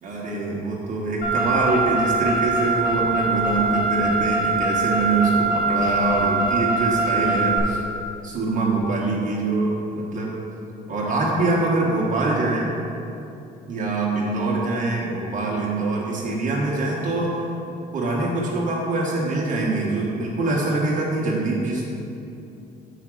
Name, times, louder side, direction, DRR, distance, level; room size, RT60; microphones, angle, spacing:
voice 1, 0.0-7.8 8.2-10.3 10.9-12.7 13.7-17.4 17.9-21.8, right 2 dB, 50° right, -4 dB, 1.3 m, -24 dB
Car, 1.2-7.6, right 3 dB, 50° left, 1.6 m, -23 dB
6.4 x 5.0 x 6.2 m, 2.8 s
cardioid pair, 110°, 17 cm